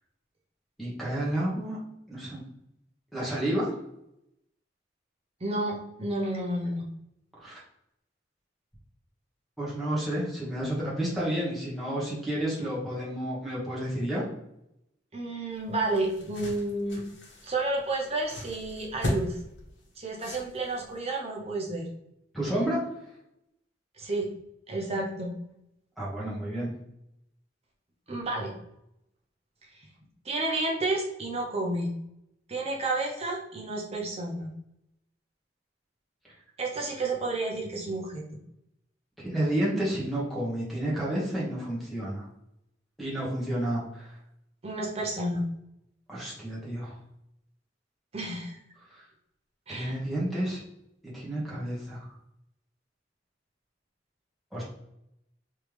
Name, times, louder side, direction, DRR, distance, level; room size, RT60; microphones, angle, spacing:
voice 1, 0.8-1.8 2.1-2.4 3.1-3.7 7.4-7.6 9.6-14.2 22.3-22.8 26.0-26.7 39.2-42.3 43.0-44.1 46.1-47.0 48.9-49.0 49.7-50.6 51.1-52.0 54.5-54.6, right 1 dB, ahead, -7 dB, 1.3 m, -30 dB
voice 2, 5.4-6.8 15.1-17.0 17.4-19.4 20.0-21.9 24.0-24.3 24.7-25.3 28.1-28.5 30.2-31.9 32.5-34.5 36.6-38.3 44.6-45.5 48.1-48.6 49.7-50.0, right 2 dB, 35° right, 0 dB, 0.8 m, -31 dB
sound 1, 15.5-21.0, left 1 dB, 80° left, 1.1 m, -37 dB
3.4 x 3.2 x 3.1 m, 0.80 s
head